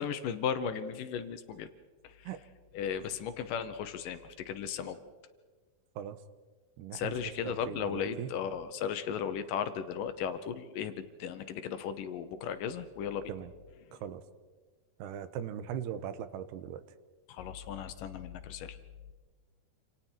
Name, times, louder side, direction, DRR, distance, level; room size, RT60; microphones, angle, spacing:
voice 1, 0.0-1.7 2.0-2.3 2.7-5.0 6.9-13.3 13.9-14.0 17.3-18.8, left 7 dB, 70° left, 10 dB, 2.3 m, -36 dB
voice 2, 6.8-7.1 7.4-8.3 13.3-13.5 13.9-14.2 15.0-16.8, right 9 dB, 90° right, 12 dB, 3.0 m, -39 dB
27.5 x 27.5 x 4.5 m, 1.4 s
omnidirectional pair, 4.6 m